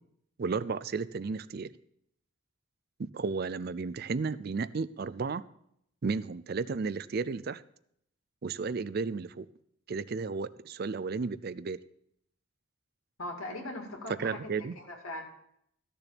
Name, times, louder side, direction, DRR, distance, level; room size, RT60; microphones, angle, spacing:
voice 1, 0.4-1.7 3.0-5.4 6.0-7.6 8.4-9.5 9.9-11.8 14.2-14.7, right 4 dB, 45° right, 16 dB, 0.4 m, -33 dB
voice 2, 13.2-14.4 14.8-15.2, left 1 dB, 80° left, 1 dB, 2.5 m, -39 dB
14.0 x 6.9 x 5.9 m, 0.72 s
head